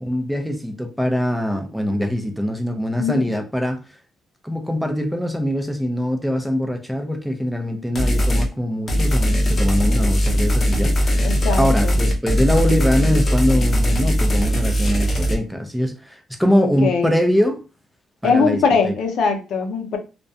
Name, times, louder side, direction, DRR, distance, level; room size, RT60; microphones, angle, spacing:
voice 1, 0.0-3.8 4.4-17.7 18.2-18.9, equal, ahead, 0.5 m, -23 dB
voice 2, 3.0-3.3 11.2-12.0 16.5-17.1 18.2-20.0, left 5 dB, 75° left, 0.6 m, -21 dB
sound 1, 8.0-8.5 8.9-15.3, equal, 35° left, 0.7 m, -19 dB
2.3 x 2.1 x 2.6 m
cardioid pair, 90°, 0 cm